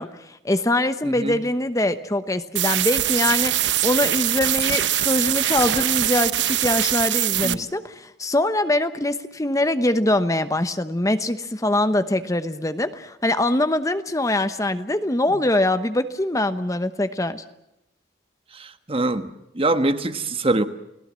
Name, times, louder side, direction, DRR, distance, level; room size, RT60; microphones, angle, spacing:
voice 1, 0.0-17.4, left 1 dB, 20° left, 0.9 m, -23 dB
voice 2, 1.0-1.4 7.4-7.6 18.5-19.3 19.5-20.6, right 2 dB, 30° right, 1.3 m, -24 dB
sound 1, 2.6-7.6, right 13 dB, 85° right, 0.8 m, -22 dB
30.0 x 18.5 x 7.5 m
head